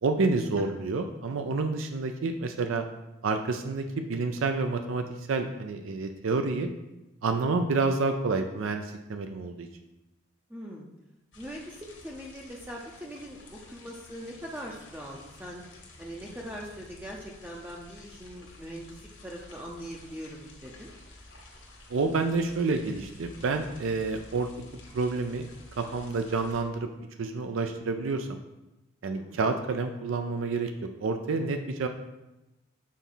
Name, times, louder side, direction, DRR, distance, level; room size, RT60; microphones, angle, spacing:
voice 1, 0.0-2.8 3.2-6.7 7.2-9.7 21.9-24.5 24.9-25.5 25.8-26.9 27.2-28.4 29.0-30.7 31.0-31.9, right 3 dB, 80° right, 6 dB, 0.4 m, -29 dB
voice 2, 10.5-10.9 11.4-15.6 16.0-20.9 29.1-29.4, equal, 10° right, -2 dB, 0.5 m, -41 dB
sound 1, 11.3-26.6, left 2 dB, 65° left, 1.4 m, -51 dB
6.3 x 4.0 x 3.9 m, 0.98 s
head